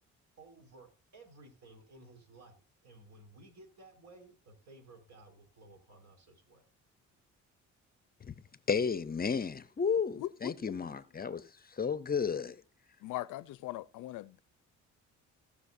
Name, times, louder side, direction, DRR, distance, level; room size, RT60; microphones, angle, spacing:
voice 1, 0.4-6.6, right 2 dB, 65° right, 4.7 m, -56 dB
voice 2, 8.7-11.4 11.7-12.6, left 6 dB, 30° left, 0.7 m, -32 dB
voice 3, 10.2-11.5 13.0-14.4, left 15 dB, 90° left, 0.6 m, -41 dB
18.0 x 6.4 x 2.6 m
cardioid pair, 90°, 30 cm